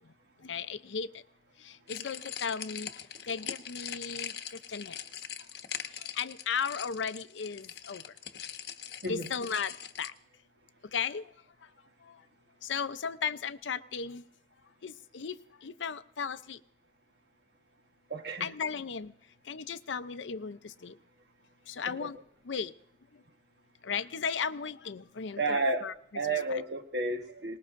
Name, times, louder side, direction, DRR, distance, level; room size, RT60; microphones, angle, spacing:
voice 1, 0.4-1.2 1.6-4.3 4.7-5.0 5.9-8.0 9.1-10.1 10.9-11.3 12.0-12.2 12.6-14.2 14.8-16.6 18.4-19.1 19.5-21.0 21.7-22.2 22.4-22.7 23.8-25.9 26.3-26.6, left 6 dB, 85° left, 13 dB, 0.6 m, -36 dB
sound 1, 1.9-10.1, left 9 dB, 60° left, 0.9 m, -42 dB
voice 2, 9.0-9.3 18.1-18.5 21.9-22.1 25.4-27.6, right 2 dB, 65° right, 5 dB, 1.3 m, -32 dB
23.5 x 20.0 x 2.6 m, 0.66 s
head